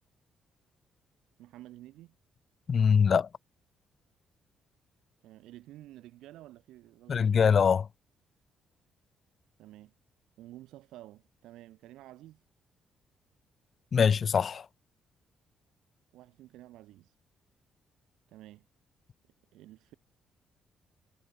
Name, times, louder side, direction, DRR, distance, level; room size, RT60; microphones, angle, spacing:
voice 1, 1.4-2.2 5.2-7.4 9.6-9.9 10.4-12.4 16.1-17.1 18.3-18.7 19.5-19.9, right 15 dB, 90° right, 6.7 m, -51 dB
voice 2, 2.7-3.3 7.1-7.9 13.9-14.7, left 6 dB, 45° left, 0.9 m, -23 dB
cardioid pair, 90°, 0 cm